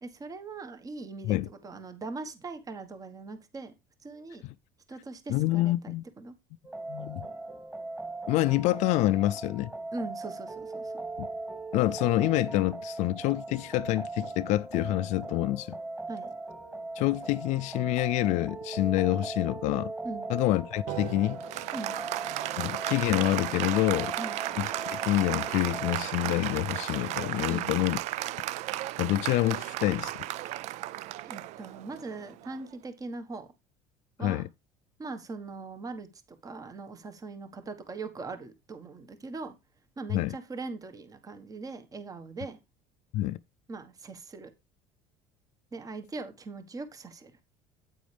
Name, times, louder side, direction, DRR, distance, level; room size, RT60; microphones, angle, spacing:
voice 1, 0.0-3.7 4.0-4.4 4.9-6.3 9.9-11.0 16.1-16.3 20.0-20.3 21.7-22.0 24.2-24.4 27.5-27.7 31.2-33.5 34.2-34.5 35.0-36.1 36.4-39.5 40.0-42.6 43.7-44.5 45.7-47.3, right 3 dB, 30° right, 1.4 m, -40 dB
voice 2, 5.3-6.0 6.9-7.3 8.3-9.7 11.2-11.3 11.7-15.8 17.0-19.9 20.3-21.4 22.6-24.1 24.6-28.0 29.0-30.1 34.2-34.4 40.1-40.4 43.1-43.4, left 17 dB, 65° left, 0.4 m, -27 dB
sound 1, 6.6-26.0, right 2 dB, 10° right, 2.5 m, -39 dB
Applause, 20.9-32.7, right 15 dB, 65° right, 0.4 m, -34 dB
9.1 x 8.6 x 3.4 m
supercardioid pair, 95°, 13 cm